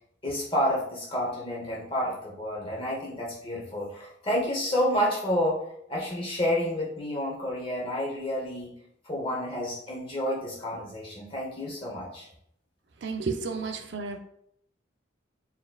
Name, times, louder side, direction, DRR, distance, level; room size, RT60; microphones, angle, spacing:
voice 1, 0.2-5.6 5.9-8.7 9.0-12.3, equal, 30° left, -4 dB, 0.9 m, -29 dB
voice 2, 13.0-14.3, right 4 dB, 65° right, 5 dB, 0.5 m, -32 dB
4.1 x 3.6 x 2.3 m, 0.72 s
head